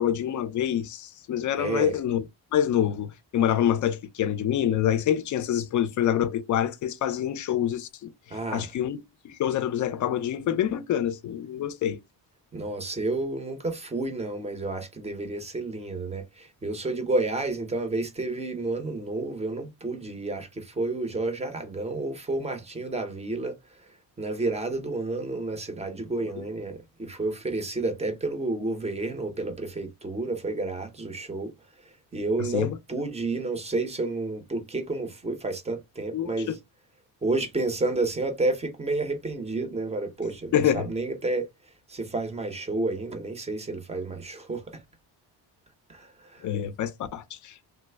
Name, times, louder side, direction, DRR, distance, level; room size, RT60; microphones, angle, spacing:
voice 1, 0.0-2.2 2.5-9.0 9.2-12.0 26.4-26.5 32.4-32.7 36.1-36.5 40.5-40.9 46.4-47.7, left 10 dB, 45° left, 0.4 m, -26 dB
voice 2, 1.6-2.0 8.3-8.7 12.5-23.5 24.2-31.5 32.1-36.6 37.2-41.5 41.9-44.8 45.9-46.5, right 2 dB, 15° right, 0.6 m, -30 dB
3.2 x 2.0 x 3.3 m
cardioid pair, 165°, 43 cm